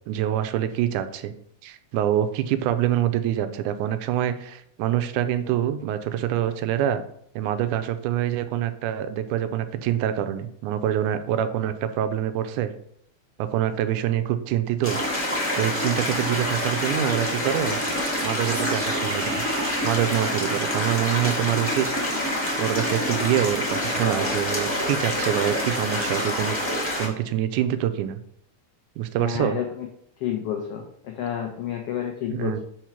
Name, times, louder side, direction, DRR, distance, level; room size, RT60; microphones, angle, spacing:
voice 1, 0.1-1.3 1.6-7.0 7.4-12.7 13.4-15.0 15.6-17.8 18.2-19.4 19.8-21.9 22.3-26.6 27.0-28.2 29.0-29.6 32.3-32.6, right 11 dB, 85° right, 11 dB, 2.1 m, -25 dB
sound 1, 14.8-27.1, left 1 dB, 10° left, 0.8 m, -26 dB
sound 2, 17.8-21.3, right 5 dB, 65° right, 1.5 m, -39 dB
voice 2, 29.2-29.9 30.2-32.6, left 9 dB, 90° left, 3 dB, 1.3 m, -30 dB
4.7 x 4.4 x 5.8 m, 0.68 s
omnidirectional pair, 3.5 m